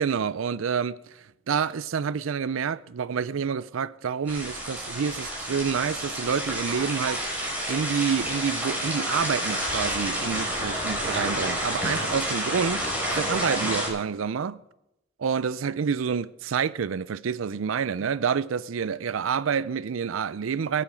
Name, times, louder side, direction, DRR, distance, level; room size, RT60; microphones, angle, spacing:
voice 1, 0.0-12.8 13.1-14.6 15.2-20.8, right 6 dB, 80° right, 0.5 m, -28 dB
sound 1, 4.3-13.9, equal, 10° right, 6.0 m, -29 dB
22.5 x 8.6 x 5.2 m
head